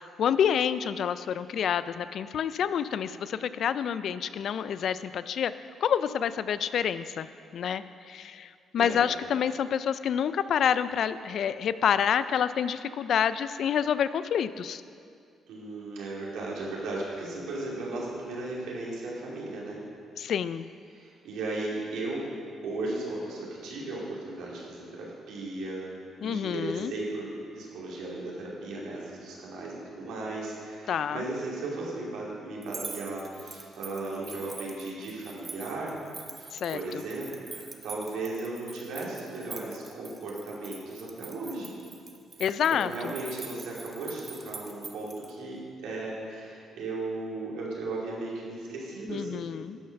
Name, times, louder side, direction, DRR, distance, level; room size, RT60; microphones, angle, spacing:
voice 1, 0.0-5.5 5.8-7.3 7.5-14.8 20.2-20.7 26.2-26.9 30.9-31.2 36.5-36.8 42.4-43.1 49.1-49.8, left 8 dB, 65° left, 14 dB, 0.4 m, -28 dB
voice 2, 15.5-19.8 20.9-22.3 22.6-25.8 26.2-27.3 27.5-35.9 36.4-41.7 42.7-49.5, right 2 dB, 85° right, -4 dB, 2.8 m, -36 dB
sound 1, 32.6-45.3, right 4 dB, 35° right, 1.0 m, -44 dB
12.0 x 6.3 x 5.9 m, 2.3 s
cardioid pair, 90°, 0 cm